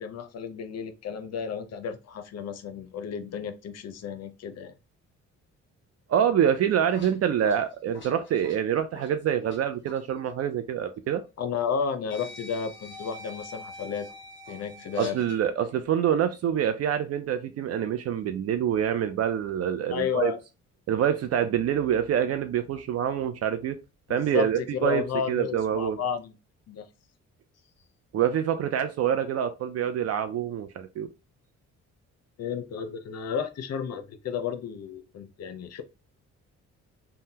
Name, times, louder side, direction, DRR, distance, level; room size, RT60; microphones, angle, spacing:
voice 1, 0.0-4.7 11.4-14.1 14.5-15.2 19.9-20.4 24.1-26.3 26.7-26.9 32.4-35.8, left 7 dB, 55° left, 0.6 m, -32 dB
voice 2, 6.1-11.2 15.0-20.3 20.9-23.8 24.1-26.0 28.1-31.1, right 9 dB, 55° right, 0.4 m, -26 dB
sound 1, 6.6-9.6 9.9-10.1 11.2-11.3 12.1-15.4, left 2 dB, 40° left, 1.3 m, -45 dB
3.5 x 2.2 x 2.8 m
cardioid pair, 90°, 30 cm